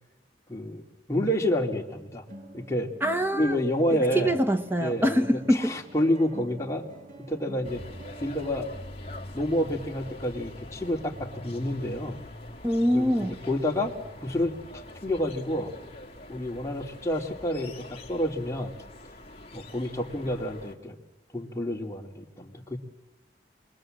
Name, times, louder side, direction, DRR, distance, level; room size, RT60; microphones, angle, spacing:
voice 1, 0.5-0.8 1.1-2.2 2.5-2.9 3.3-4.4 4.8-5.2 5.5-6.9 7.3-7.8 8.2-8.7 9.3-12.2 12.9-13.2 13.5-13.9 14.2-14.5 15.0-15.7 16.3-18.7 19.5-21.0 21.3-22.8, left 1 dB, 15° left, 0 dB, 2.5 m, -28 dB
sound 1, 1.4-1.5 2.3-8.5, right 1 dB, 50° right, 2.1 m, -46 dB
voice 2, 3.0-3.6 3.9-5.7 12.6-13.4, equal, 10° right, 8 dB, 1.3 m, -24 dB
sound 2, 7.6-20.8, left 1 dB, 35° left, 2.0 m, -44 dB
28.0 x 23.0 x 7.7 m, 1.1 s
head